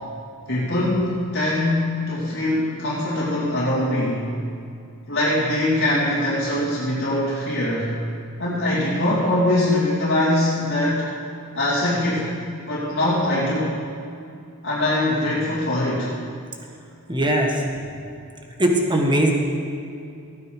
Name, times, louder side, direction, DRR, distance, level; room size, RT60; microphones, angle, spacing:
voice 1, 0.5-4.3 5.1-8.0 8.4-11.1 11.5-12.3 12.7-13.7 14.6-16.1, left 1 dB, 55° left, -10 dB, 2.7 m, -22 dB
voice 2, 17.1-17.6 18.6-19.3, right 1 dB, 20° right, 1 dB, 1.3 m, -19 dB
16.0 x 9.4 x 5.0 m, 2.5 s
head